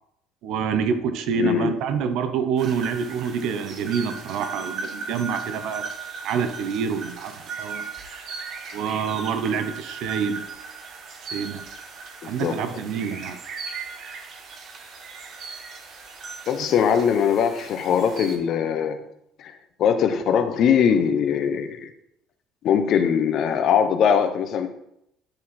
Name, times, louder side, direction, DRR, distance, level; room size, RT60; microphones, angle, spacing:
voice 1, 0.4-5.9 6.2-7.8 8.7-10.4 11.3-11.6 12.3-13.4 16.6-16.7, right 6 dB, 70° right, 10 dB, 0.7 m, -27 dB
voice 2, 1.4-1.7 12.2-12.5 16.5-19.0 19.4-19.5 19.8-21.9 22.6-24.7, left 7 dB, 55° left, 9 dB, 0.8 m, -21 dB
sound 1, 2.6-18.4, right 5 dB, 45° right, 1.2 m, -37 dB
9.7 x 4.3 x 4.2 m, 0.78 s
cardioid pair, 140°, 0 cm